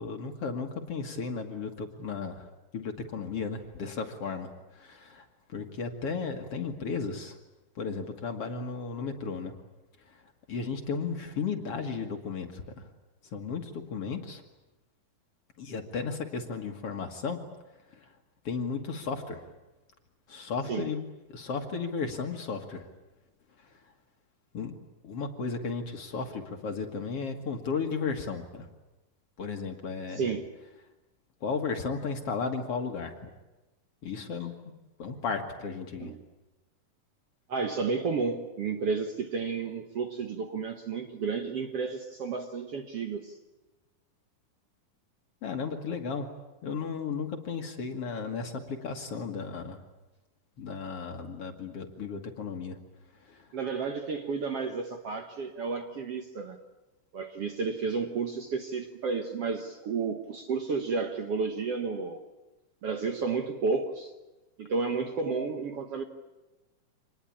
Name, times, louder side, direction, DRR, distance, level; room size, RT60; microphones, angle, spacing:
voice 1, 0.0-7.4 7.8-9.5 10.1-12.9 13.3-14.4 15.6-17.4 17.9-18.1 18.4-19.5 20.3-21.0 21.3-22.9 23.6-23.8 24.5-24.8 25.0-28.7 29.4-30.3 31.4-33.3 34.0-34.5 35.0-36.1 45.4-46.3 46.6-49.8 50.6-52.8 53.1-53.5, left 5 dB, 50° left, 2.3 m, -34 dB
voice 2, 30.1-30.5 36.0-36.2 37.5-43.4 53.5-56.6 57.1-62.2 62.8-64.1 64.6-66.0, right 4 dB, 55° right, 1.9 m, -32 dB
26.5 x 20.0 x 8.7 m
omnidirectional pair, 4.0 m